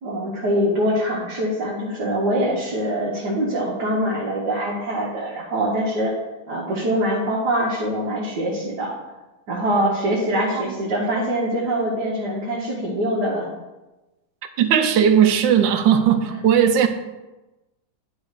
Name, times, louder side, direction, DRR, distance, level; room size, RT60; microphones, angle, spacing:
voice 1, 0.0-6.1 6.5-8.9 9.5-13.5 16.3-16.4, right 1 dB, 65° right, -4 dB, 1.8 m, -23 dB
voice 2, 14.6-16.9, right 8 dB, 85° right, 8 dB, 1.4 m, -17 dB
10.5 x 4.2 x 4.9 m, 1.1 s
omnidirectional pair, 1.9 m